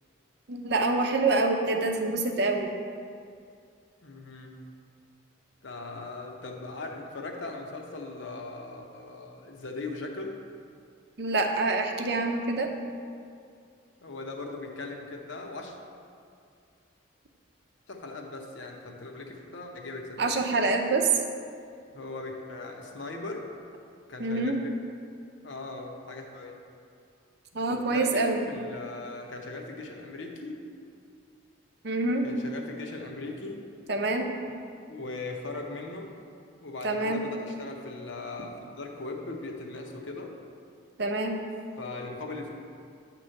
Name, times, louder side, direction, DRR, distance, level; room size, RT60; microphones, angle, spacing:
voice 1, 0.5-2.7 11.2-12.7 20.2-21.1 24.2-24.5 27.5-28.4 31.8-32.3 33.9-34.3 36.8-37.2 41.0-41.3, right 2 dB, 55° right, 3 dB, 0.6 m, -26 dB
voice 2, 4.0-4.6 5.6-10.3 14.0-15.8 17.9-20.4 21.9-23.5 24.1-24.7 25.4-26.6 27.7-30.6 32.2-33.6 34.9-40.3 41.8-42.5, left 3 dB, 65° left, 2 dB, 0.8 m, -39 dB
8.9 x 3.0 x 6.4 m, 2.3 s
head